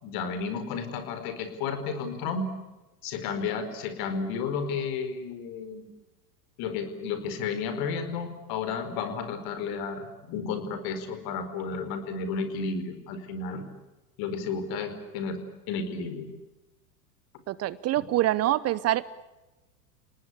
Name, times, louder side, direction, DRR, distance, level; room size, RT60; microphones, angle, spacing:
voice 1, 0.0-2.4 3.0-5.9 6.6-13.6 14.2-15.4 15.7-16.3 18.0-18.1, left 5 dB, 50° left, 10 dB, 4.8 m, -32 dB
voice 2, 17.5-19.0, right 15 dB, 30° right, 19 dB, 0.8 m, -25 dB
29.5 x 19.0 x 8.6 m, 1.1 s
hypercardioid pair, 95°, 47 cm